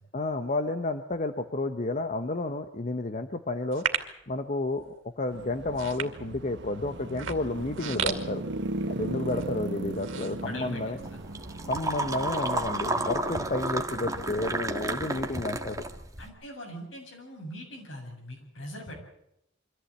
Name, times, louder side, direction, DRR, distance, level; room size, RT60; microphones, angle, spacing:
voice 1, 0.1-3.9 4.3-8.4 8.9-11.0 11.7-15.8, left 2 dB, 40° left, 8 dB, 0.9 m, -31 dB
sound 1, 3.7-4.2 4.8-5.1 5.6-6.6 7.1-9.0 9.3-9.5 9.9-11.0 11.4-11.5, right 7 dB, 85° right, 2.4 m, -34 dB
sound 2, 5.3-15.4, right 2 dB, 65° right, 1.2 m, -38 dB
voice 2, 10.4-11.2 16.2-18.9, equal, 75° left, 1 dB, 7.6 m, -41 dB
sound 3, 11.0-16.3, right 2 dB, 20° right, 1.6 m, -32 dB
24.0 x 15.0 x 8.7 m, 0.79 s
head